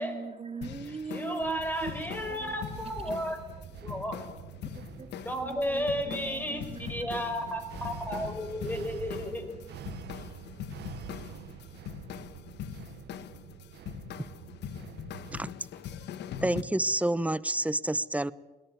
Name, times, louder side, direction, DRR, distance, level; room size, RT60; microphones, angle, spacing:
voice 1, 0.0-2.6 3.1-3.2 5.0-5.1 5.3-6.9 9.0-12.4, right 5 dB, 35° right, 9 dB, 2.1 m, -43 dB
sound 1, 0.6-16.6, left 8 dB, 90° left, 1.3 m, -42 dB
voice 2, 0.9-3.4 3.8-4.3 5.2-6.6 6.9-9.5, equal, 10° left, 7 dB, 5.1 m, -33 dB
sound 2, 1.4-15.4, right 10 dB, 80° right, 1.2 m, -47 dB
sound 3, 2.2-9.9, left 2 dB, 40° left, 7.9 m, -54 dB
voice 3, 16.4-18.3, right 1 dB, 10° right, 18 dB, 0.8 m, -28 dB
21.0 x 19.0 x 9.3 m, 1.1 s
cardioid pair, 90°, 17 cm